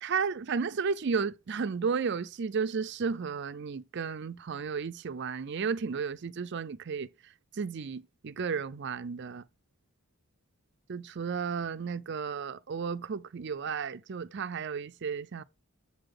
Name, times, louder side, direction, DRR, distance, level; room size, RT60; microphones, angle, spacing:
voice 1, 0.0-7.1 7.5-9.4 10.9-15.4, right 5 dB, 50° right, 0.5 m, -33 dB
7.5 x 3.9 x 5.0 m
head